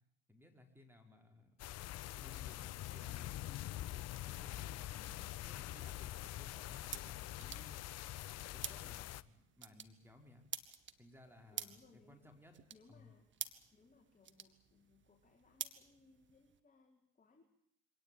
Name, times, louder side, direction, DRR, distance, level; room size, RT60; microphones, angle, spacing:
voice 1, 0.3-1.5 2.1-3.8 4.3-5.0 5.4-7.8 8.5-10.4 11.0-12.6 12.9-13.1, left 2 dB, 5° right, 4 dB, 4.7 m, -61 dB
sound 1, 1.6-9.2, left 14 dB, 55° left, 0.9 m, -45 dB
voice 2, 4.9-5.4 11.5-12.2 12.7-13.3 13.7-17.4, left 4 dB, 25° left, 1 dB, 4.3 m, -66 dB
sound 2, 5.1-16.6, right 8 dB, 40° right, 1.8 m, -51 dB
24.5 x 18.0 x 9.2 m, 0.73 s
hypercardioid pair, 75°, 31 cm